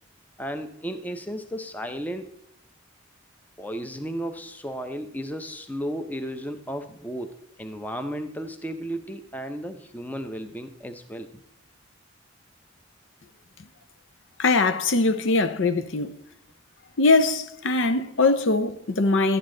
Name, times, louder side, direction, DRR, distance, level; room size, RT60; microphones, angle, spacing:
voice 1, 0.4-2.3 3.6-11.3, equal, 10° left, 0.6 m, -34 dB
voice 2, 14.4-16.2 17.0-19.4, left 3 dB, 70° left, 0.7 m, -21 dB
12.0 x 9.3 x 3.8 m
head